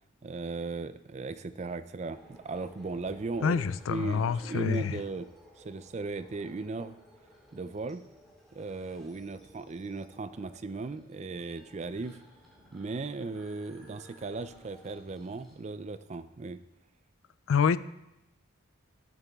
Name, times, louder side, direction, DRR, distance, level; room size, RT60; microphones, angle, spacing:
voice 1, 0.2-3.6 3.9-5.3 5.6-6.9 7.5-8.0 8.5-12.2 12.7-16.6, right 3 dB, 35° right, 13 dB, 0.4 m, -37 dB
sound 1, 2.1-15.6, equal, ahead, 2.2 m, -57 dB
voice 2, 3.4-5.0 17.5-17.8, left 6 dB, 85° left, 16 dB, 0.4 m, -27 dB
12.5 x 6.8 x 3.5 m, 0.91 s
head